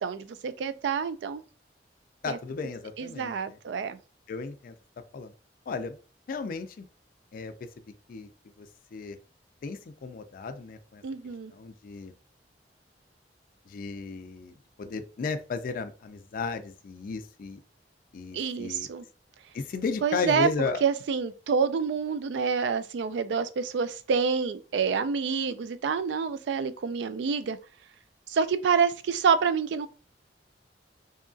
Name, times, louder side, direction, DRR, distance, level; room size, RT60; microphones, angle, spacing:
voice 1, 0.0-1.4 2.3-2.4 3.0-4.0 11.0-11.5 18.3-19.0 20.0-20.5 20.8-27.6 28.3-29.9, right 6 dB, 75° right, 0.3 m, -27 dB
voice 2, 2.2-3.6 4.3-4.7 5.1-5.3 5.7-6.0 6.3-6.9 7.3-7.5 8.1-8.3 8.6-8.7 8.9-9.2 9.6-11.0 11.5-12.1 13.7-17.6 18.1-18.9 19.5-20.8, left 4 dB, 50° left, 0.3 m, -34 dB
2.7 x 2.5 x 2.3 m
head